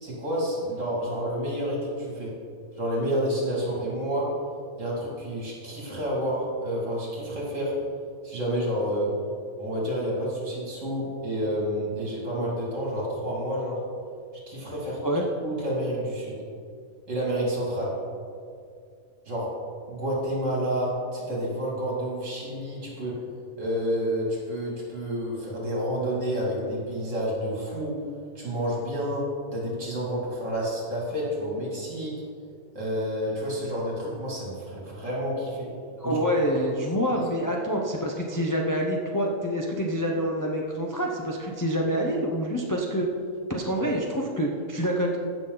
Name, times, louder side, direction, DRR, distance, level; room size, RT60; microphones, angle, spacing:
voice 1, 0.0-2.3 2.7-4.3 4.8-7.7 8.2-9.1 9.6-13.8 14.5-15.0 15.4-16.4 17.1-17.9 19.3-19.5 19.9-23.2 23.6-27.9 28.3-29.2 29.5-32.1 32.7-35.7 36.0-36.2 37.1-37.2 43.8-43.9, equal, 55° right, -4 dB, 3.0 m, -29 dB
voice 2, 36.0-43.1 43.5-45.2, equal, 20° left, -1 dB, 0.5 m, -27 dB
15.0 x 6.1 x 4.0 m, 2.3 s
omnidirectional pair, 1.6 m